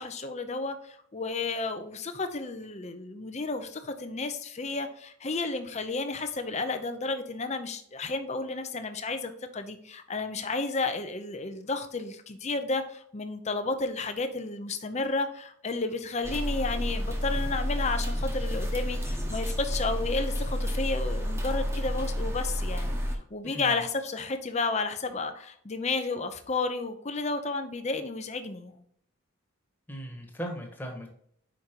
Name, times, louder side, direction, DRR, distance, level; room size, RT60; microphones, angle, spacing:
voice 1, 0.0-23.0 23.3-28.7, left 3 dB, 30° left, 8 dB, 0.6 m, -32 dB
sound 1, 16.2-23.2, equal, 10° right, 1.0 m, -30 dB
voice 2, 23.4-23.8 29.9-31.1, equal, 10° left, 0 dB, 1.3 m, -38 dB
5.2 x 5.2 x 4.5 m, 0.66 s
head